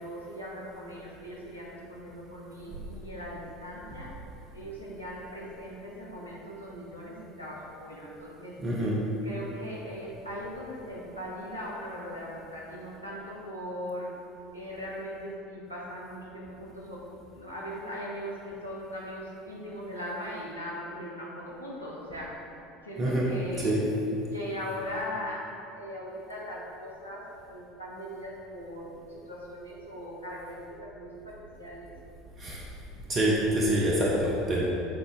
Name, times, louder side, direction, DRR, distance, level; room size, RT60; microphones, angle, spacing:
voice 1, 0.0-4.1 4.5-8.6 9.2-14.1 14.5-17.1 17.3-22.4 22.8-23.8 24.3-25.5 25.8-31.9, equal, 90° left, -5 dB, 1.0 m, -39 dB
voice 2, 8.6-9.0 23.0-23.3 23.6-23.8 32.4-32.6 33.1-34.7, right 1 dB, 35° right, -4 dB, 1.0 m, -26 dB
8.8 x 4.0 x 3.8 m, 2.8 s
figure-of-eight pair, 70°, 0 cm